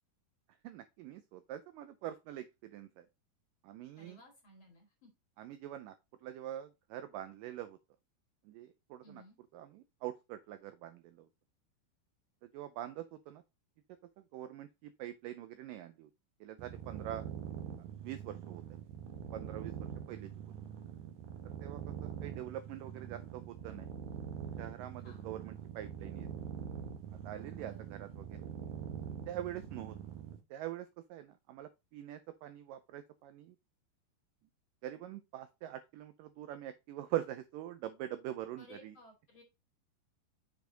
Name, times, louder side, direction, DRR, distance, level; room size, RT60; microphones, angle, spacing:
voice 1, 0.6-3.1 3.6-4.2 5.4-6.0 6.2-7.8 8.5-9.2 9.5-11.3 12.5-13.4 14.3-16.1 16.4-17.3 18.0-18.6 19.3-20.3 21.6-23.9 24.6-26.3 27.2-28.5 29.1-30.0 30.5-33.6 34.8-39.0, right 12 dB, 85° right, 11 dB, 1.9 m, -44 dB
voice 2, 4.0-5.1 9.0-9.4 25.0-25.3 27.6-28.1 38.6-39.4, left 1 dB, 40° left, 1 dB, 2.2 m, -58 dB
sound 1, 16.6-30.4, right 9 dB, 70° right, 2.0 m, -44 dB
7.0 x 4.9 x 3.8 m, 0.24 s
omnidirectional pair, 4.5 m